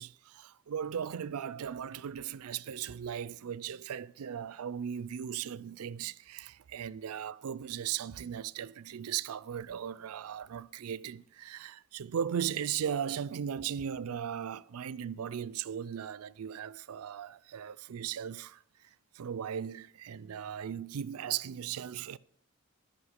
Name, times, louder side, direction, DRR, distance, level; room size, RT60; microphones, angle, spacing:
voice 1, 0.0-18.6 19.2-22.2, right 8 dB, 90° right, 0.4 m, -37 dB
12.5 x 5.5 x 6.5 m
head